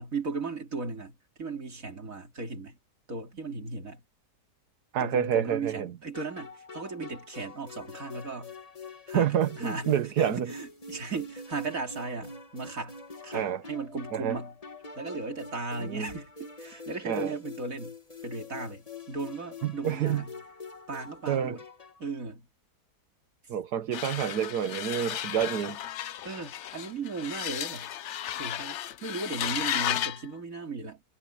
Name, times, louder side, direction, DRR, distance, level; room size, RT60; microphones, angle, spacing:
voice 1, 0.0-2.8 3.1-4.0 5.0-8.5 9.1-14.6 15.0-18.0 18.2-20.3 20.9-21.6 22.0-22.5 26.2-27.9 28.4-31.0, right 3 dB, 50° right, 3.4 m, -37 dB
voice 2, 4.9-5.9 9.1-10.5 13.3-13.6 14.1-14.4 15.8-16.1 17.0-17.3 19.6-20.2 21.3-21.6 23.5-25.8, right 9 dB, 65° right, 1.5 m, -28 dB
sound 1, 6.1-22.1, left 3 dB, 20° left, 1.4 m, -45 dB
sound 2, 23.9-30.2, left 11 dB, 65° left, 0.7 m, -34 dB
omnidirectional pair, 1.9 m